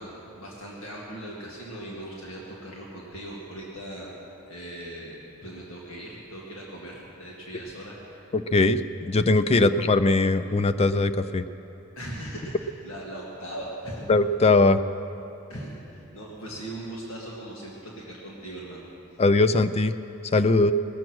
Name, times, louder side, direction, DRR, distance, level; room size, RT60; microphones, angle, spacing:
voice 1, 0.0-8.4 9.5-9.7 12.0-14.0 15.5-18.9, right 1 dB, 65° left, -4 dB, 1.9 m, -39 dB
voice 2, 8.3-11.4 14.1-14.8 19.2-19.9 20.3-20.7, left 3 dB, 30° left, 10 dB, 0.4 m, -20 dB
20.5 x 7.6 x 6.2 m, 2.9 s
head